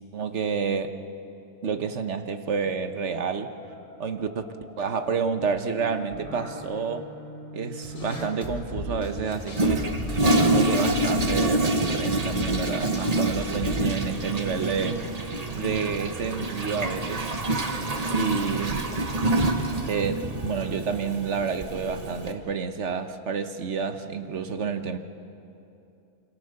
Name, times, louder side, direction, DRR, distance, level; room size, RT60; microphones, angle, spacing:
voice 1, 0.1-1.0 1.6-3.5 4.0-4.4 4.8-7.1 7.5-9.9 10.5-15.0 15.5-17.3 18.1-18.8 19.8-25.0, right 6 dB, 55° right, 8 dB, 1.4 m, -29 dB
sound 1, 2.6-11.7, right 1 dB, 25° left, 5.7 m, -43 dB
sound 2, 7.8-14.1, left 1 dB, 60° left, 3.3 m, -37 dB
Toilet flush, 9.5-22.3, right 1 dB, 30° right, 1.3 m, -26 dB
27.5 x 24.5 x 6.7 m, 2.7 s
omnidirectional pair, 1.5 m